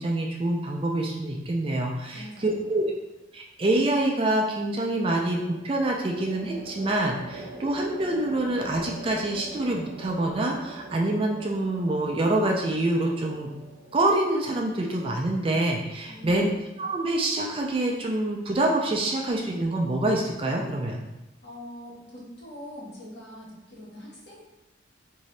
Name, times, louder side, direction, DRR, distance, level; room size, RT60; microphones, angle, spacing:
voice 1, 0.0-2.9 3.3-13.5 13.9-16.5 16.8-21.0, right 1 dB, 25° right, 0 dB, 0.3 m, -26 dB
voice 2, 2.1-2.9 16.0-16.6 21.4-24.4, left 1 dB, 55° left, -7 dB, 1.4 m, -43 dB
sound 1, 2.4-3.0 5.5-16.9, right 1 dB, 90° right, 0.6 m, -44 dB
3.8 x 2.6 x 3.2 m, 1.0 s
head